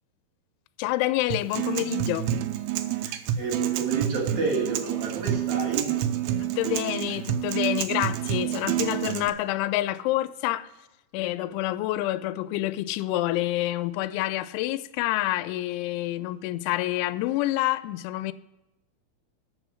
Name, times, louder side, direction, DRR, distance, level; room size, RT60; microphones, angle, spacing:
voice 1, 0.8-2.3 6.4-10.7 11.1-18.3, left 16 dB, 85° left, 2.9 m, -28 dB
Acoustic guitar, 1.3-9.3, right 11 dB, 85° right, 3.1 m, -28 dB
voice 2, 3.0-6.2, right 4 dB, 50° right, 2.7 m, -30 dB
13.0 x 5.8 x 6.2 m
omnidirectional pair, 5.4 m